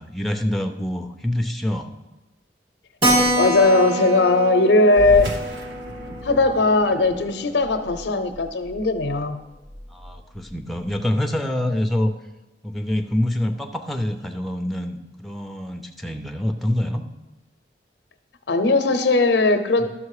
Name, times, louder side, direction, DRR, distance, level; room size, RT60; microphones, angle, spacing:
voice 1, 0.0-1.9 9.9-12.1 12.6-17.0 19.8-19.9, left 1 dB, ahead, 4 dB, 0.6 m, -26 dB
Keyboard (musical), 3.0-8.1 8.3-8.4 8.7-8.8 9.1-9.2 9.8-10.1, equal, 30° right, 2.2 m, -26 dB
voice 2, 3.4-5.4 6.2-9.4 18.5-19.9, left 2 dB, 80° left, 9 dB, 0.7 m, -18 dB
sound 1, 4.9-9.8, equal, 85° right, 1.0 m, -35 dB
12.0 x 6.2 x 4.8 m, 1.0 s
head